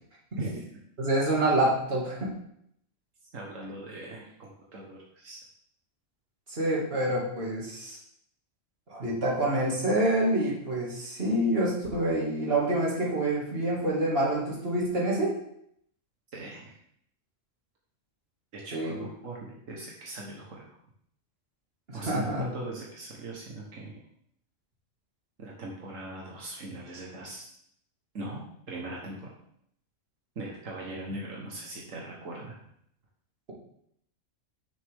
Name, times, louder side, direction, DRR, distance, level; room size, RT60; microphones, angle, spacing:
voice 1, 0.4-0.8 3.3-5.4 16.3-16.8 18.5-20.6 21.9-23.9 25.4-27.5 28.1-29.3 30.4-32.6, right 2 dB, 80° right, -3 dB, 1.8 m, -40 dB
voice 2, 1.0-2.3 6.5-8.0 8.9-15.3 18.7-18.9 22.0-22.4, right 1 dB, 50° right, -4 dB, 2.6 m, -27 dB
10.0 x 6.4 x 3.7 m, 0.70 s
omnidirectional pair, 1.3 m